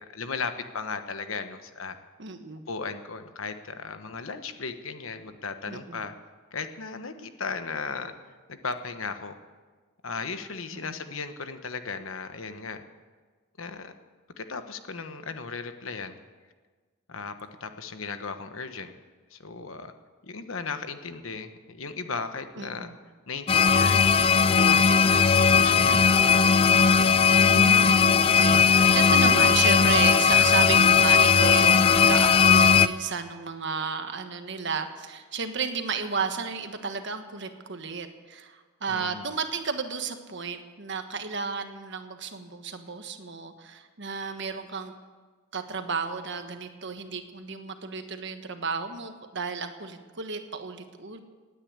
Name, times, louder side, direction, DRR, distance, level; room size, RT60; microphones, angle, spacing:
voice 1, 0.1-2.0 2.7-6.1 6.5-8.1 8.5-9.4 10.0-12.8 13.6-13.9 14.4-16.2 17.1-17.3 17.6-18.9 19.3-19.9 20.2-22.9 23.3-26.6 38.9-39.3, left 4 dB, 75° left, 9 dB, 1.2 m, -36 dB
voice 2, 2.2-2.7 5.7-6.0 10.7-11.0 22.5-22.9 27.4-44.9 45.5-51.2, right 5 dB, 60° right, 7 dB, 1.4 m, -33 dB
sound 1, 23.5-32.9, left 6 dB, 25° left, 0.4 m, -18 dB
17.5 x 9.8 x 8.2 m, 1.4 s
head